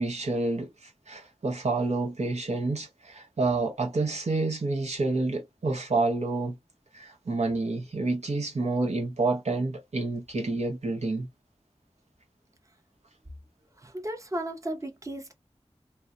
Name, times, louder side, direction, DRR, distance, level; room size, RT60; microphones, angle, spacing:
voice 1, 0.0-6.6 6.9-11.3, right 3 dB, 80° right, 0.9 m, -28 dB
voice 2, 13.7-15.3, right 1 dB, 30° right, 0.7 m, -35 dB
2.7 x 2.1 x 2.3 m
wide cardioid pair, 40°, 11 cm